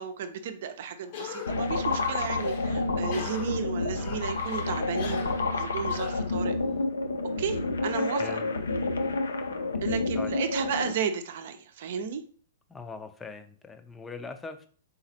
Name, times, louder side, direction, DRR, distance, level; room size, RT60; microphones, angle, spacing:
voice 1, 0.0-6.5 7.4-8.4 9.8-12.2, right 7 dB, 60° right, 8 dB, 0.6 m, -33 dB
Cough, 1.0-6.8, left 6 dB, 55° left, 0.9 m, -43 dB
sound 1, 1.5-10.9, left 3 dB, 80° left, 0.5 m, -29 dB
voice 2, 12.7-14.7, left 4 dB, 15° left, 8 dB, 0.6 m, -41 dB
4.1 x 3.9 x 2.8 m, 0.43 s
hypercardioid pair, 115°, 0 cm